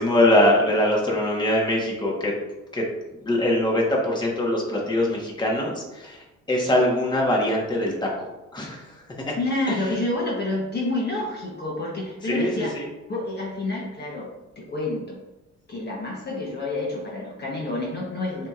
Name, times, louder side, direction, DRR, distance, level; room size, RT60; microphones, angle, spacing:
voice 1, 0.0-2.3 2.7-2.8 3.2-8.3 8.5-8.9 9.3-9.4 9.7-9.8 12.2-12.8, left 1 dB, 15° left, -2 dB, 1.2 m, -22 dB
voice 2, 9.4-12.7 13.1-14.3 14.6-15.2 15.7-18.5, left 2 dB, 35° left, -4 dB, 1.1 m, -28 dB
7.2 x 2.9 x 2.4 m, 1.0 s
cardioid pair, 90°, 30 cm